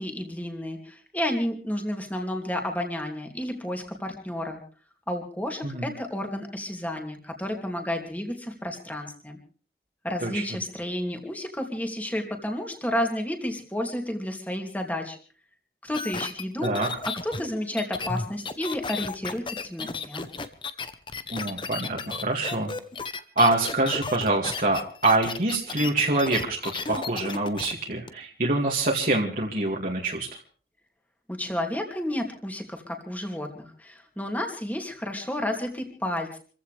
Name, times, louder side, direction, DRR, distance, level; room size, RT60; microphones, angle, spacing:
voice 1, 0.0-4.6 5.1-9.4 10.0-15.2 15.8-16.7 17.1-20.3 31.3-36.4, left 1 dB, 10° left, 2 dB, 2.7 m, -31 dB
sound 1, 15.9-27.7 28.1-28.2, left 4 dB, 30° left, 0.9 m, -34 dB
voice 2, 21.3-22.7 23.4-30.3, right 2 dB, 50° right, -2 dB, 2.3 m, -25 dB
28.0 x 15.5 x 3.4 m, 0.41 s
head